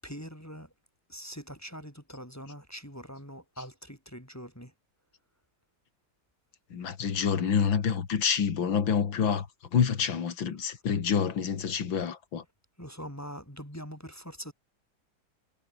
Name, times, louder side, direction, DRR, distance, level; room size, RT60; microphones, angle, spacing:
voice 1, 0.0-0.7 1.1-4.7 11.2-11.3 12.8-14.5, equal, 5° left, 8.0 m, -43 dB
voice 2, 6.7-12.4, left 7 dB, 70° left, 2.8 m, -27 dB
omnidirectional pair, 2.2 m